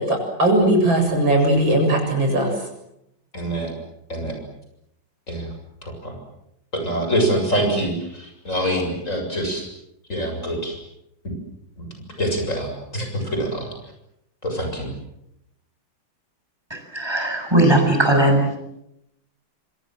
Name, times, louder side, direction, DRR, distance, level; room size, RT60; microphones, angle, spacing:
voice 1, 0.0-2.5, right 1 dB, 70° right, 3 dB, 8.4 m, -19 dB
voice 2, 3.3-3.7 4.1-4.3 5.3-5.5 5.8-6.1 6.7-9.6 10.1-10.8 11.2-11.3 11.8-11.9 12.2-13.7 14.4-14.9, right 1 dB, 35° left, 3 dB, 7.6 m, -25 dB
voice 3, 16.7-18.4, right 1 dB, 10° right, 3 dB, 7.5 m, -18 dB
26.5 x 26.5 x 7.7 m, 0.81 s
omnidirectional pair, 2.2 m